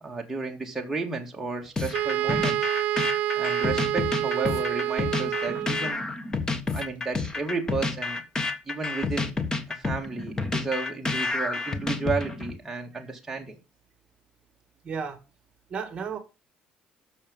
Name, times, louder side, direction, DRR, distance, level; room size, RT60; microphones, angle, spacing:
voice 1, 0.0-2.7 3.3-6.0 6.7-8.2 8.7-9.3 9.7-13.6, right 4 dB, 10° right, 2.2 m, -32 dB
sound 1, 1.8-12.5, left 3 dB, 20° left, 1.4 m, -29 dB
Wind instrument woodwind instrument, 1.9-6.0, right 13 dB, 65° right, 0.5 m, -28 dB
voice 2, 14.8-15.2 15.7-16.2, right 6 dB, 35° right, 2.1 m, -34 dB
13.0 x 6.6 x 5.5 m
cardioid pair, 140°, 3 cm